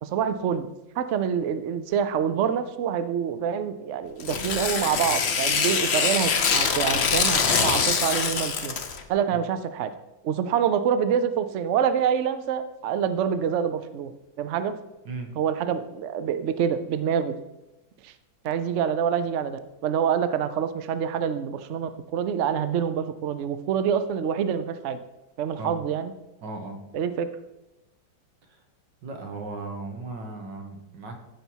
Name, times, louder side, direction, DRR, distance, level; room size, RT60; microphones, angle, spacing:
voice 1, 0.0-0.7 1.0-8.7 9.1-9.9 10.2-14.7 15.3-17.3 18.0-18.1 18.4-25.0 25.4-26.1 26.9-27.3, right 8 dB, 85° right, 11 dB, 0.6 m, -26 dB
Tearing, 4.2-9.0, left 6 dB, 50° left, 0.8 m, -24 dB
voice 2, 26.4-26.8 28.5-28.6 29.0-31.2, right 3 dB, 65° right, 4 dB, 2.1 m, -36 dB
15.5 x 5.4 x 4.6 m, 0.98 s
omnidirectional pair, 2.1 m